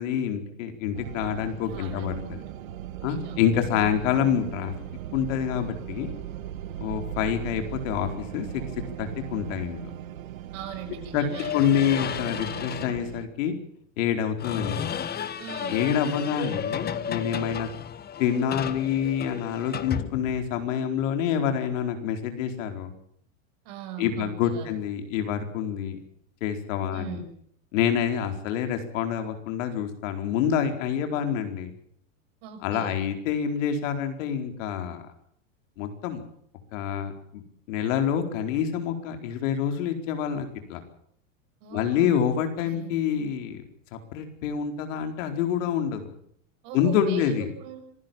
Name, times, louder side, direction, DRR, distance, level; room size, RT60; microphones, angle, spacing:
voice 1, 0.0-2.4 3.0-4.7 5.1-6.1 6.8-8.6 9.0-9.8 11.1-11.2 11.5-13.5 14.0-14.9 15.7-17.7 18.2-22.9 24.0-26.0 26.4-27.2 27.7-31.7 32.6-35.0 35.8-36.2 36.7-37.4 37.7-40.8 41.7-43.6 43.9-46.1 46.7-47.5, left 8 dB, 70° left, 6 dB, 4.5 m, -27 dB
sound 1, 0.9-13.3, right 11 dB, 80° right, 1.6 m, -38 dB
voice 2, 1.6-2.5 3.1-3.4 10.5-11.7 15.4-15.9 23.6-24.8 26.9-27.3 32.4-33.0 41.6-42.2 42.6-42.9 46.6-47.8, right 7 dB, 60° right, 7 dB, 6.3 m, -41 dB
sound 2, 11.3-13.0 14.4-20.7, left 8 dB, 25° left, 1.2 m, -33 dB
26.0 x 16.0 x 7.6 m, 0.67 s
hypercardioid pair, 115°, 40 cm